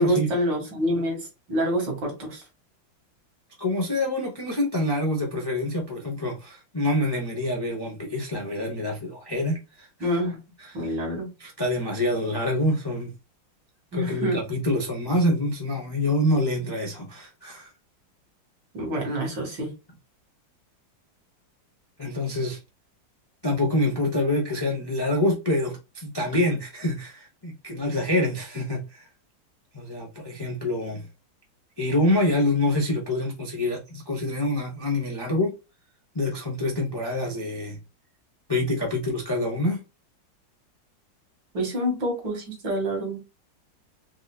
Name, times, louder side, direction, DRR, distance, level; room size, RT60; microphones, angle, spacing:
voice 1, 0.0-2.4 10.0-10.4 10.7-11.3 13.9-14.4 18.7-19.7 41.5-43.2, equal, 80° right, 2.3 m, -27 dB
voice 2, 3.6-9.9 11.4-13.1 13.9-17.7 22.0-22.6 23.4-29.1 29.7-31.1 31.8-35.6 36.1-37.8 38.5-39.8, left 1 dB, 30° left, 0.4 m, -26 dB
4.8 x 2.6 x 2.3 m
omnidirectional pair, 2.0 m